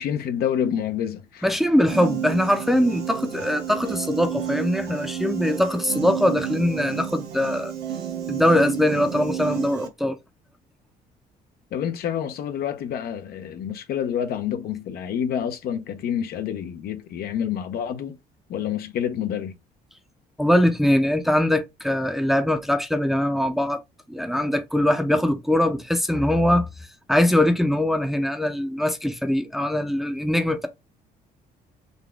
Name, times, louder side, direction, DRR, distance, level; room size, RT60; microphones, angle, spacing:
voice 1, 0.0-1.5 11.7-18.2 18.5-19.5, left 9 dB, 65° left, 0.7 m, -28 dB
voice 2, 1.4-7.7 8.3-10.2 20.4-23.8 24.1-26.7 27.1-30.7, left 1 dB, ahead, 0.6 m, -22 dB
Piano, 1.9-9.9, right 9 dB, 85° right, 0.9 m, -31 dB
3.9 x 2.2 x 3.4 m
cardioid pair, 110°, 17 cm